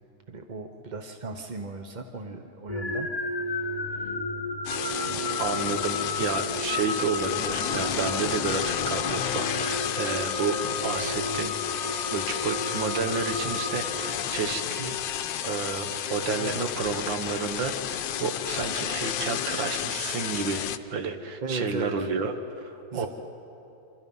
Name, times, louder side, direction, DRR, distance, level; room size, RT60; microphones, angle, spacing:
voice 1, 0.3-3.1 3.4-4.1 4.9-5.8 21.4-22.1 22.9-23.1, right 3 dB, 40° right, 5 dB, 0.6 m, -37 dB
sound 1, 2.7-14.7, left 2 dB, 45° left, 0.4 m, -33 dB
sound 2, 4.7-20.8, left 10 dB, 75° left, 1.4 m, -32 dB
voice 2, 5.4-11.5 12.1-15.0 15.4-20.6 20.9-23.1, right 5 dB, 80° right, 7 dB, 2.0 m, -31 dB
26.5 x 26.0 x 5.5 m, 2.9 s
omnidirectional pair, 2.0 m